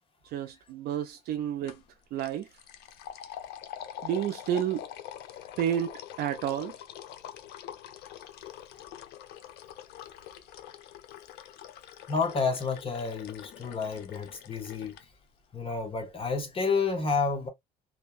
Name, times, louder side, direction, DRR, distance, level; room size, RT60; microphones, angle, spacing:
voice 1, 0.3-1.8 2.1-2.5 4.0-4.8 5.6-5.9 6.2-6.7, right 10 dB, 70° right, 0.4 m, -30 dB
sound 1, 1.7-1.9 2.2-15.0, left 11 dB, 80° left, 0.5 m, -45 dB
voice 2, 12.1-15.0 15.5-17.5, left 4 dB, 35° left, 0.8 m, -30 dB
2.6 x 2.2 x 2.3 m
cardioid pair, 110°, 17 cm